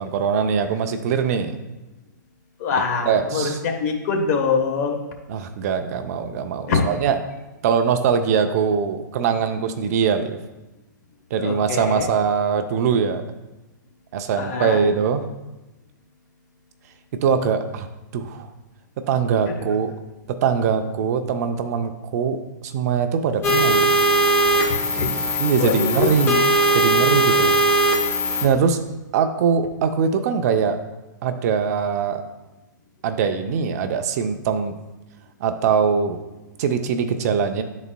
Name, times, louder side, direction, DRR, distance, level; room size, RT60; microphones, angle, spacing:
voice 1, 0.0-1.5 3.1-3.5 5.3-7.2 7.6-10.4 11.3-13.2 14.1-15.2 17.2-17.9 18.1-18.5 19.1-19.9 20.3-23.9 25.4-26.4 26.7-27.5 28.4-28.8 29.1-30.8 31.2-32.2 33.0-34.7 35.4-36.2 36.6-37.6, right 6 dB, 50° right, 8 dB, 0.6 m, -22 dB
voice 2, 2.6-5.0 6.7-6.8 11.3-12.1 14.4-14.8 19.5-19.7 24.6-25.1 25.6-26.1, left 5 dB, 50° left, 2 dB, 1.1 m, -24 dB
sound 1, 23.4-28.5, right 1 dB, 20° left, 1.0 m, -19 dB
11.0 x 4.1 x 2.2 m, 1.0 s
hypercardioid pair, 135°, 11 cm